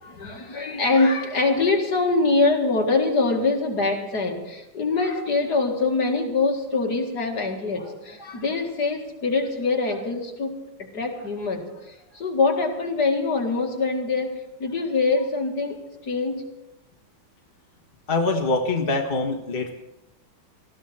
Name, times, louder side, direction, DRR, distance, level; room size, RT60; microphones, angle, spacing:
voice 1, 0.0-16.4, left 3 dB, 50° left, 1 dB, 2.6 m, -24 dB
voice 2, 18.1-19.7, left 3 dB, 30° left, 2 dB, 1.4 m, -24 dB
19.5 x 14.5 x 4.3 m, 0.93 s
omnidirectional pair, 2.3 m